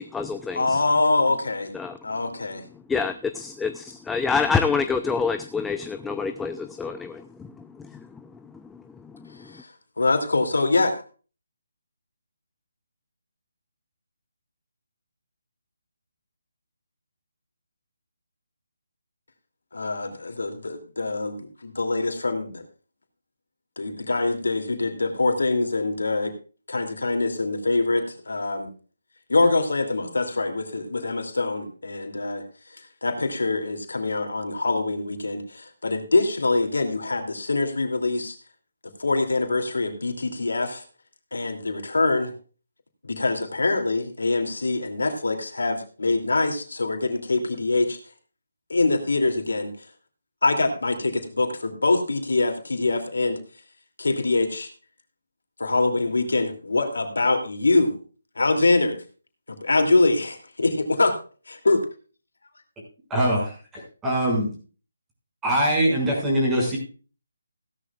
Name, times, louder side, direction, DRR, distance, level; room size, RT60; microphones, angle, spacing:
voice 1, 0.0-0.8 1.7-2.0 2.9-7.5 7.8-8.0 9.1-9.3, left 5 dB, 5° left, 9 dB, 0.5 m, -27 dB
voice 2, 0.5-1.7 2.0-2.6 9.4-9.7 10.0-10.9 19.7-22.6 23.8-26.3 26.7-28.7 29.3-38.3 39.0-40.8 41.3-42.3 43.0-48.0 48.7-49.9 50.4-53.4 54.0-54.7 55.6-58.0 58.3-59.0 59.6-60.7 61.0-61.1 61.6-61.8, left 3 dB, 75° left, 5 dB, 2.8 m, -24 dB
voice 3, 63.1-64.5 65.4-66.8, right 1 dB, 10° right, -2 dB, 6.4 m, -23 dB
16.5 x 12.0 x 2.4 m, 0.36 s
figure-of-eight pair, 155°, 0 cm